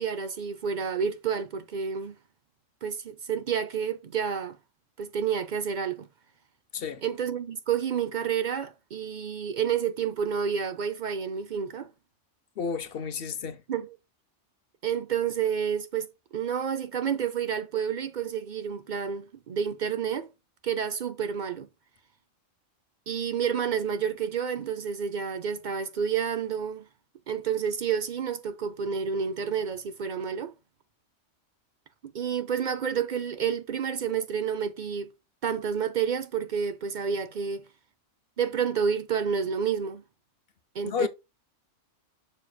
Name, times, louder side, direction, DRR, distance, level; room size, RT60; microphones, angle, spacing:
voice 1, 0.0-2.2 2.8-4.6 5.0-6.1 7.0-11.9 13.7-14.0 14.8-16.1 16.3-20.3 20.6-21.7 23.1-26.8 27.3-30.5 32.0-35.1 35.4-37.7 38.4-40.0 40.7-41.1, right 7 dB, 50° right, 0.6 m, -29 dB
voice 2, 6.7-7.0 12.6-13.6 40.9-41.1, left 6 dB, 55° left, 0.8 m, -31 dB
7.0 x 6.4 x 2.3 m
omnidirectional pair, 1.3 m